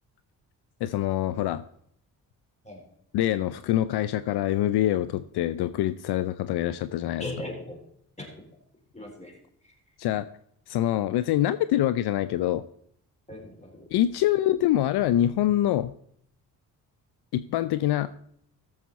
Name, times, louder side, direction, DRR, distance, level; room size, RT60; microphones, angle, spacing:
voice 1, 0.8-1.6 3.1-7.2 10.0-10.3 10.7-12.6 13.9-15.9 17.3-18.1, left 13 dB, 70° left, 14 dB, 0.5 m, -25 dB
voice 2, 7.2-7.8 8.2-8.3 8.9-9.4 9.6-9.7 13.3-13.9, left 1 dB, 15° left, 0 dB, 4.2 m, -38 dB
14.5 x 7.2 x 4.1 m, 0.68 s
supercardioid pair, 55°, 41 cm